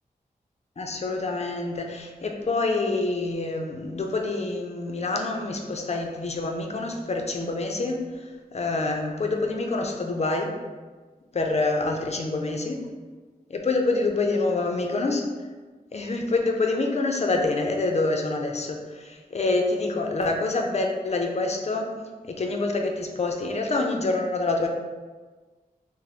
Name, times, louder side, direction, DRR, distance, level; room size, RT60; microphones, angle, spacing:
voice 1, 0.8-8.0 8.5-10.6 11.3-12.9 13.5-15.2 15.9-21.9 22.3-24.7, left 3 dB, 45° left, 2 dB, 0.4 m, -26 dB
3.0 x 2.0 x 3.9 m, 1.4 s
wide cardioid pair, 75°, 15 cm